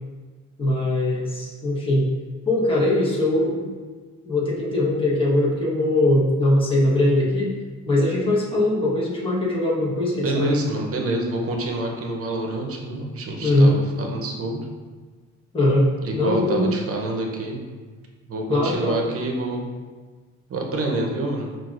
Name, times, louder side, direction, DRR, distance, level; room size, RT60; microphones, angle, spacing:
voice 1, 0.6-2.0 2.5-3.7 4.2-7.5 7.9-10.5 13.4-13.8 15.5-15.9 16.1-16.7 18.5-19.1, left 1 dB, 15° left, -6 dB, 1.1 m, -21 dB
voice 2, 10.2-14.7 16.0-17.6 18.2-19.7 20.5-21.5, right 2 dB, 50° right, 1 dB, 0.7 m, -27 dB
5.6 x 2.4 x 2.4 m, 1.4 s
cardioid pair, 90°, 30 cm